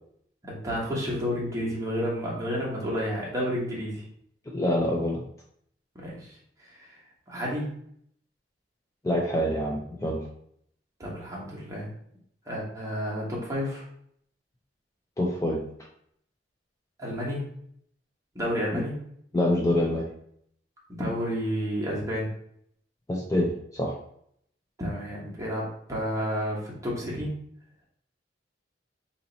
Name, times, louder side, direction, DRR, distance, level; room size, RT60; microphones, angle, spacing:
voice 1, 0.4-4.1 5.9-7.0 7.3-7.7 11.0-11.9 12.4-13.8 17.0-17.5 18.3-18.9 20.9-22.3 24.8-27.3, equal, 20° right, -5 dB, 1.1 m, -31 dB
voice 2, 4.5-5.2 9.0-10.2 15.2-15.6 18.7-18.8 19.3-20.1 23.1-23.9, left 1 dB, 20° left, -2 dB, 0.4 m, -26 dB
2.9 x 2.8 x 3.9 m, 0.68 s
head